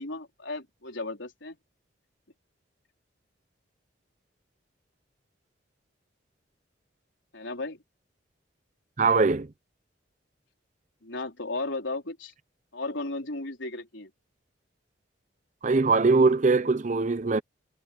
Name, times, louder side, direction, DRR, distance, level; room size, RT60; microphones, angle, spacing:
voice 1, 0.0-1.6 7.3-7.8 11.0-12.3 12.7-14.1, left 2 dB, 80° left, 4.1 m, -35 dB
voice 2, 9.0-9.5 15.6-17.4, right 3 dB, 40° right, 0.5 m, -21 dB
head